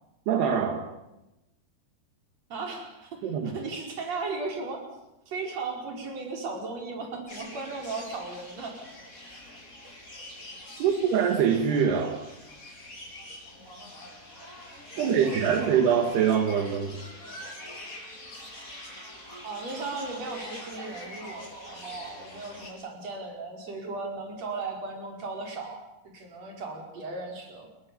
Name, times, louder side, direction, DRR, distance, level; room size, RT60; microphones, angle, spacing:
voice 1, 0.3-0.9 3.2-3.5 10.8-12.2 15.0-17.0, right 7 dB, 80° right, 4 dB, 3.9 m, -24 dB
voice 2, 2.5-4.8 5.3-8.8 14.9-15.7 19.4-25.8 26.1-27.7, right 3 dB, 40° right, 2 dB, 5.8 m, -36 dB
sound 1, 7.3-22.7, left 1 dB, 20° left, 6.4 m, -44 dB
29.0 x 21.0 x 7.0 m, 0.93 s
omnidirectional pair, 4.6 m